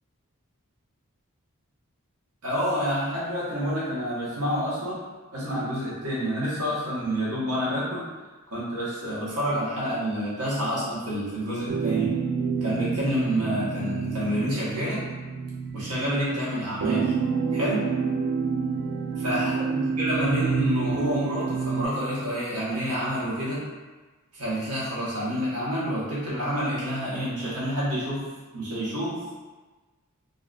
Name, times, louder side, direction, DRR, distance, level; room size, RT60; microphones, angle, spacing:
voice 1, 2.4-5.0 5.3-8.1 8.5-12.1 12.6-15.0 15.7-17.2 17.5-17.9 19.2-23.6 24.3-28.2 28.5-29.4, equal, 85° right, -8 dB, 1.4 m, -28 dB
sound 1, 11.7-21.9, right 5 dB, 60° right, 0.3 m, -28 dB
4.0 x 2.6 x 2.5 m, 1.3 s
head